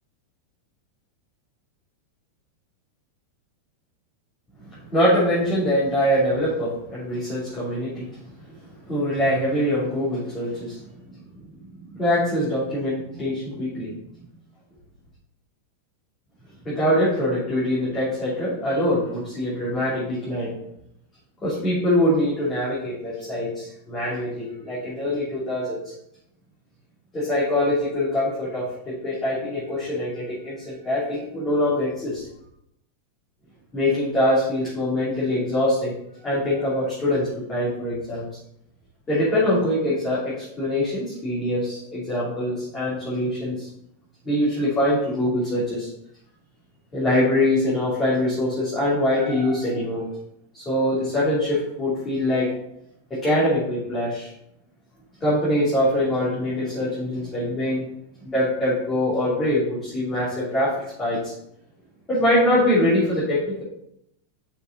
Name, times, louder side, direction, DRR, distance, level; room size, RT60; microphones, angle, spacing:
voice 1, 4.7-8.1 8.6-10.8 11.9-13.9 16.6-20.6 21.4-25.9 27.1-32.2 33.7-35.9 36.2-38.3 39.1-43.7 44.2-45.9 46.9-50.1 50.5-52.5 53.1-54.3 55.2-57.9 58.2-61.3 62.1-63.6, left 1 dB, 20° left, -10 dB, 3.0 m, -23 dB
6.4 x 5.7 x 4.1 m, 0.77 s
figure-of-eight pair, 90°, 0 cm